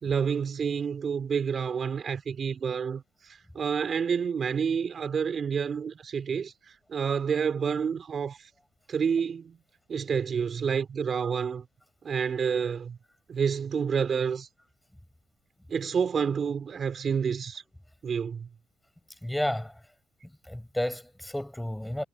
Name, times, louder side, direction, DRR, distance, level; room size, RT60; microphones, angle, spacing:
voice 1, 0.0-8.5 8.9-9.6 9.9-11.7 12.0-13.0 13.3-14.5 15.7-17.6 18.0-18.5, right 6 dB, 50° right, 3.6 m, -29 dB
voice 2, 19.2-19.7 20.5-22.0, left 1 dB, 5° left, 5.8 m, -31 dB
cardioid pair, 90°, 0 cm